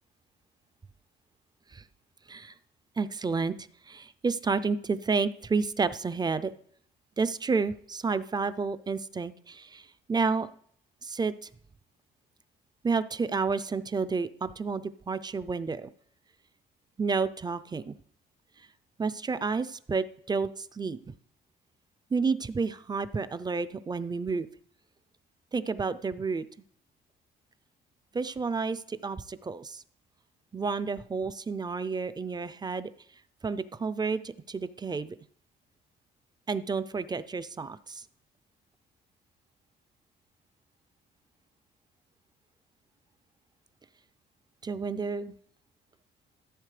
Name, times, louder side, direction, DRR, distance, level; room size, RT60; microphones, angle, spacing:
voice 1, 3.0-3.6 3.9-6.5 7.2-9.8 10.1-10.5 11.0-11.3 12.8-15.9 17.0-17.9 19.0-21.0 22.1-24.5 25.5-26.4 28.1-29.8 30.5-32.9 33.4-35.2 36.5-38.0 44.6-45.3, right 4 dB, 20° right, 13 dB, 0.5 m, -30 dB
14.5 x 7.3 x 3.3 m, 0.65 s
cardioid pair, 90°, 20 cm